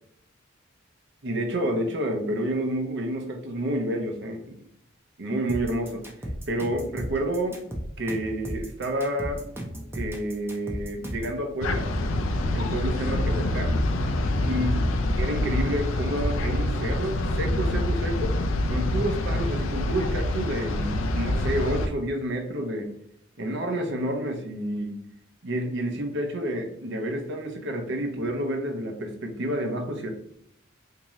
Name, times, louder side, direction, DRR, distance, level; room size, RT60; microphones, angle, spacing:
voice 1, 1.2-4.6 5.2-7.6 8.0-9.4 9.9-11.9 12.5-13.8 14.5-14.7 15.2-18.3 18.7-22.9 23.4-25.0 25.4-30.1, right 1 dB, 60° right, 3 dB, 0.7 m, -29 dB
sound 1, 5.5-11.4, equal, 10° right, 0.5 m, -35 dB
sound 2, 11.6-21.9, left 1 dB, 75° left, 0.4 m, -26 dB
3.6 x 2.8 x 3.0 m, 0.71 s
head